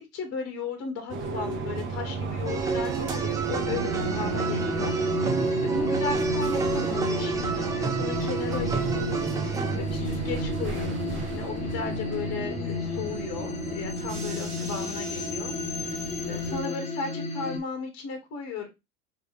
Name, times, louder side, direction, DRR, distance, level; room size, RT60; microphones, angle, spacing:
voice 1, 0.1-9.2 9.5-18.7, left 5 dB, 35° left, 4 dB, 1.7 m, -36 dB
sound 1, 1.1-16.6, right 5 dB, 25° right, 1.0 m, -31 dB
sound 2, 2.5-9.8, right 5 dB, 10° right, 0.4 m, -32 dB
sound 3, 3.5-17.6, left 4 dB, 15° left, 0.9 m, -33 dB
4.7 x 3.4 x 3.1 m, 0.22 s
hypercardioid pair, 110°, 44 cm